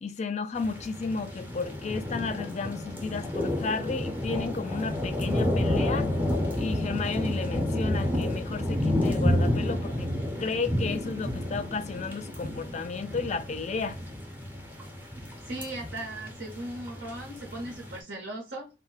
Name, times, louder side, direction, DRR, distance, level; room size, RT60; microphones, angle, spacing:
voice 1, 0.0-6.1 6.6-10.1 10.4-14.0, left 4 dB, 40° left, 0.4 m, -33 dB
sound 1, 0.6-18.0, left 1 dB, 10° right, 0.6 m, -30 dB
voice 2, 15.4-18.7, right 1 dB, 80° right, 0.9 m, -38 dB
2.2 x 2.1 x 3.8 m
head